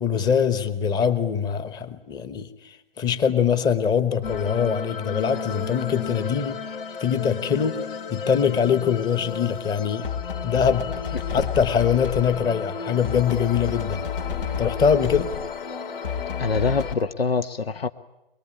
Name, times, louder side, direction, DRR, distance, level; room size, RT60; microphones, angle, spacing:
voice 1, 0.0-6.6 7.0-7.8 8.1-10.1 10.4-14.0 14.6-15.3, left 7 dB, 15° left, 12 dB, 1.1 m, -23 dB
sound 1, 4.2-16.9, left 6 dB, 70° left, 3.2 m, -31 dB
voice 2, 16.4-17.9, left 4 dB, 90° left, 10 dB, 1.2 m, -24 dB
22.5 x 22.5 x 9.8 m, 0.90 s
hypercardioid pair, 140°, 29 cm